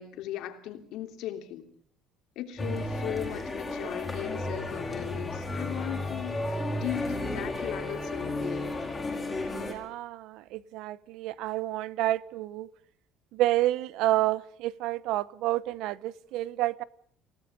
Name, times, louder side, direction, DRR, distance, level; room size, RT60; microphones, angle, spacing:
voice 1, 0.0-1.7 2.3-8.7, left 11 dB, 60° left, 6 dB, 3.1 m, -37 dB
sound 1, 2.6-9.7, left 2 dB, 10° left, 4.9 m, -33 dB
voice 2, 9.5-12.7 13.3-16.8, right 15 dB, 65° right, 19 dB, 0.9 m, -29 dB
28.5 x 18.0 x 5.4 m, 0.62 s
cardioid pair, 175°, 0 cm